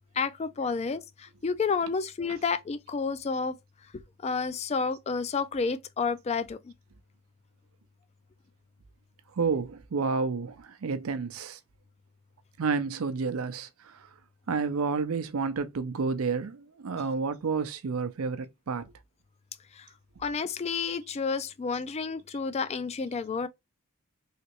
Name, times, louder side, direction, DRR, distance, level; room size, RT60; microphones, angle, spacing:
voice 1, 0.2-3.6 4.2-6.7 19.7-19.9 20.2-23.5, left 5 dB, 30° left, 0.3 m, -30 dB
voice 2, 9.3-11.6 12.6-14.1 14.5-18.9, right 4 dB, 90° right, 0.5 m, -30 dB
3.2 x 2.9 x 3.0 m
head